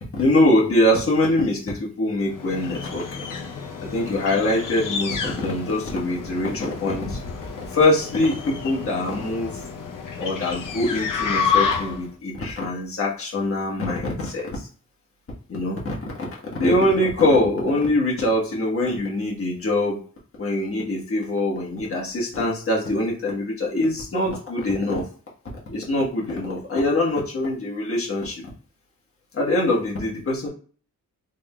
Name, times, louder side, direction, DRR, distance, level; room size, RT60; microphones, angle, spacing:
voice 1, 0.1-3.3 3.9-7.2 7.7-9.6 10.2-14.7 15.5-15.9 16.5-20.0 20.4-25.0 25.7-28.4 29.3-30.5, left 1 dB, 40° left, -4 dB, 1.3 m, -23 dB
sound 1, 2.3-12.1, left 6 dB, 65° left, 0.7 m, -29 dB
3.6 x 3.6 x 2.3 m, 0.42 s
wide cardioid pair, 115°, 34 cm